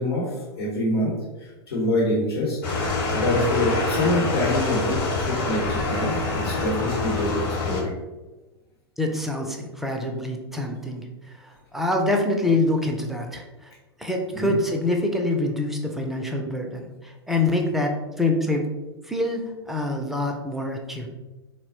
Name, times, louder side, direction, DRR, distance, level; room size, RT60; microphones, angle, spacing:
voice 1, 0.0-2.6 2.8-7.3 7.6-7.9 14.3-14.5, left 1 dB, 70° left, -6 dB, 1.0 m, -26 dB
sound 1, 2.6-7.8, left 3 dB, 40° left, 0.9 m, -25 dB
voice 2, 9.0-11.0 11.4-13.7 14.0-18.6 19.0-21.1, left 2 dB, ahead, 2 dB, 0.3 m, -25 dB
3.9 x 2.0 x 2.8 m, 1.1 s
figure-of-eight pair, 95°, 14 cm